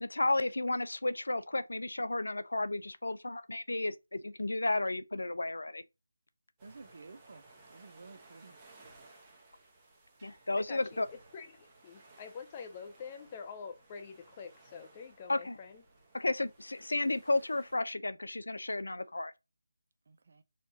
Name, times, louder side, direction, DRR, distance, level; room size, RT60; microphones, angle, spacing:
voice 1, 0.0-5.8 10.2-11.1 15.3-15.6 16.1-19.3, left 2 dB, 80° left, 0.5 m, -33 dB
sound 1, 6.6-17.8, right 2 dB, 15° right, 0.9 m, -59 dB
voice 2, 6.6-7.4 7.7-8.6 20.1-20.4, right 4 dB, 50° right, 0.5 m, -52 dB
voice 3, 10.6-11.1 11.3-15.8, left 5 dB, 25° left, 0.5 m, -46 dB
4.2 x 2.3 x 2.7 m
figure-of-eight pair, 165°, 0 cm